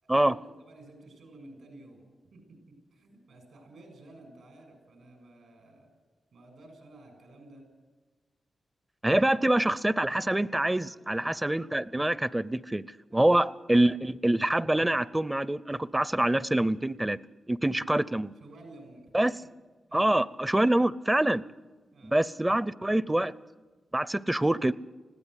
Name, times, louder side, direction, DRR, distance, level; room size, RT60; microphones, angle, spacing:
voice 1, 0.0-5.9 6.3-7.6 9.2-9.4 10.7-11.4 13.1-13.3 17.6-17.9 18.3-19.3 19.9-20.1 21.9-22.2, right 2 dB, 85° right, 4 dB, 6.8 m, -52 dB
voice 2, 9.0-12.8 13.1-17.2 17.5-18.3 19.1-19.3 19.9-21.4 22.0-23.3 23.9-24.7, right 1 dB, 15° right, 18 dB, 0.5 m, -25 dB
20.5 x 16.0 x 8.2 m, 1.3 s
cardioid pair, 75°, 0 cm